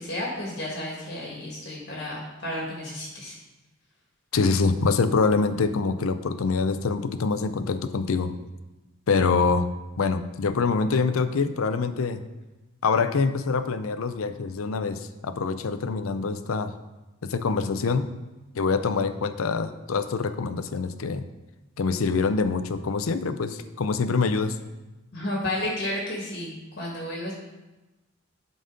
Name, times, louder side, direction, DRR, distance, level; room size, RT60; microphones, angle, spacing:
voice 1, 0.0-3.3 25.1-27.3, left 1 dB, 50° left, -3 dB, 1.5 m, -32 dB
voice 2, 4.3-8.3 9.1-9.7 10.0-12.2 12.8-16.8 17.2-18.1 18.5-21.2 21.8-24.6, left 4 dB, 85° left, 11 dB, 0.5 m, -25 dB
11.5 x 4.1 x 5.1 m, 1.1 s
head